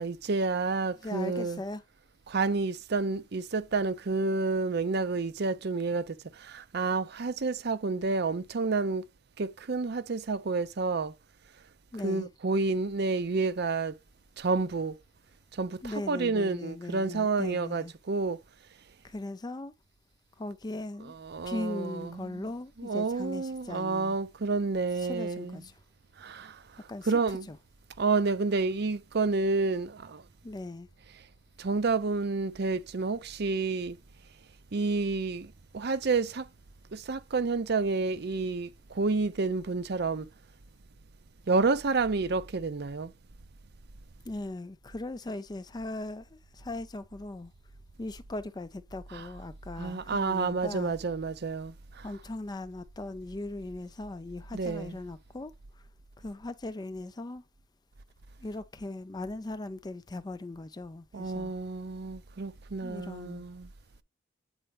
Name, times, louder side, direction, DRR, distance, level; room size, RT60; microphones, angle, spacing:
voice 1, 0.0-1.6 2.3-9.0 9.4-11.1 11.9-14.0 14.4-15.0 15.5-18.4 21.0-22.5 22.8-25.7 26.2-27.5 28.0-30.2 31.1-31.3 31.6-34.0 34.7-36.5 36.9-40.3 41.5-43.1 49.1-49.3 49.8-52.2 54.5-55.0 61.1-63.7, right 3 dB, 50° right, 0.5 m, -30 dB
voice 2, 1.0-1.8 11.9-12.3 15.8-17.9 19.0-19.7 20.4-21.1 21.4-24.2 25.0-25.7 26.9-27.1 27.5-27.6 30.4-30.9 44.3-47.5 48.0-51.0 52.0-55.5 56.2-57.4 58.4-61.5 62.8-63.5, left 2 dB, 20° left, 0.4 m, -39 dB
8.8 x 4.3 x 3.4 m
head